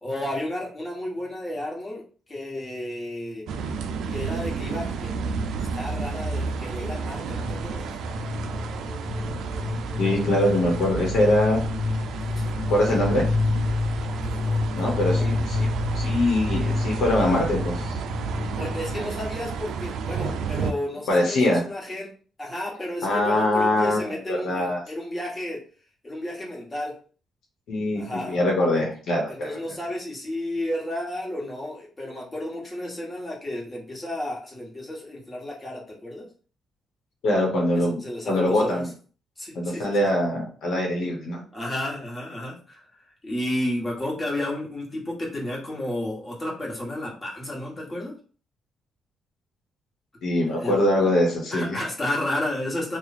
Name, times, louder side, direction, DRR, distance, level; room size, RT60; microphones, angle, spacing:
voice 1, 0.0-3.5 4.1-5.1 5.6-7.9 12.2-12.9 14.0-15.5 18.5-22.1 22.4-25.6 26.0-26.9 27.9-28.4 29.3-36.3 37.8-38.9 39.4-40.1 41.5-42.8 43.2-48.1 50.5-50.8 51.5-53.0, left 1 dB, 20° left, -4 dB, 1.5 m, -32 dB
sound 1, 3.5-20.7, right 5 dB, 75° right, 0.4 m, -31 dB
sound 2, 5.7-5.9 6.2-19.0, left 3 dB, 45° left, 0.7 m, -29 dB
voice 2, 10.0-11.6 12.7-13.2 14.7-15.7 15.9-18.0 21.1-21.6 23.0-24.8 27.7-29.6 37.2-38.0 38.3-38.9 39.5-41.4 50.2-51.8, left 1 dB, 75° left, -1 dB, 1.1 m, -23 dB
3.0 x 2.4 x 4.2 m, 0.41 s
cardioid pair, 90°, 0 cm